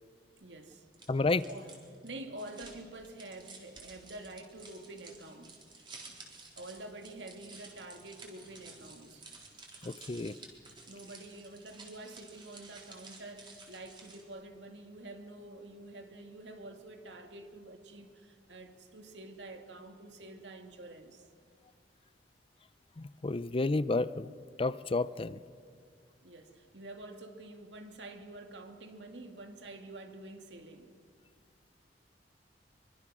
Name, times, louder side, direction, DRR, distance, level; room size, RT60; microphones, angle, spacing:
voice 1, 0.4-0.9 1.5-1.7 2.0-6.2 6.5-9.3 10.9-21.3 26.2-30.9, right 2 dB, 80° right, 5 dB, 2.1 m, -48 dB
sound 1, 0.9-14.4, right 3 dB, 30° right, 3.9 m, -53 dB
voice 2, 1.1-1.5 9.8-10.3 23.0-24.3 24.6-25.4, left 3 dB, 30° left, 16 dB, 0.5 m, -31 dB
24.5 x 24.0 x 6.2 m, 2.1 s
head